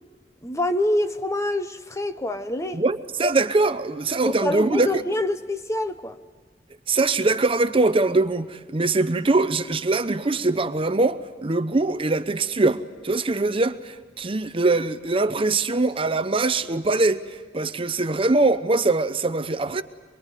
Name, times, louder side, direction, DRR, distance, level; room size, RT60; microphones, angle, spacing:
voice 1, 0.4-2.8 4.2-6.2, left 1 dB, 15° left, 0.9 m, -26 dB
voice 2, 2.7-5.0 6.9-19.8, right 3 dB, 30° right, 0.7 m, -22 dB
24.0 x 23.0 x 9.1 m
head